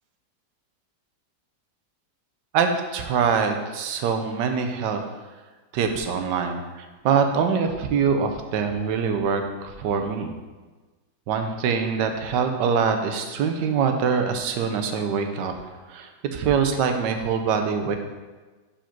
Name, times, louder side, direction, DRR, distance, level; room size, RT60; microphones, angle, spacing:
voice 1, 2.5-5.0 5.7-10.3 11.3-15.6 15.9-18.0, right 6 dB, 80° right, 6 dB, 1.4 m, -24 dB
5.1 x 5.1 x 5.8 m, 1.3 s
omnidirectional pair, 1.9 m